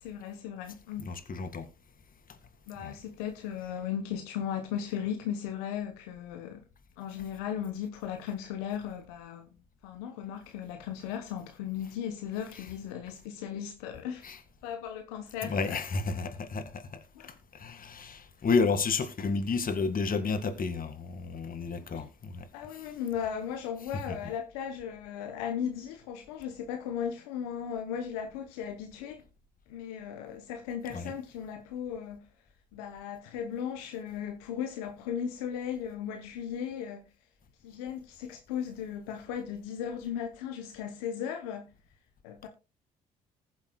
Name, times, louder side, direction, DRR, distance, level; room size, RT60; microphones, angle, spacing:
voice 1, 0.0-1.0 2.7-6.6 7.0-9.5 9.8-14.2 14.6-15.8 17.1-17.3 21.9-22.1 22.5-29.2 29.7-32.2 32.7-37.1 37.6-41.7 42.2-42.5, left 8 dB, 85° left, 0.9 m, -36 dB
voice 2, 1.1-1.7 2.8-2.9 14.2-14.4 15.4-22.5 30.9-31.1, left 4 dB, 45° left, 1.9 m, -31 dB
19.5 x 7.3 x 2.2 m
hypercardioid pair, 50°, 19 cm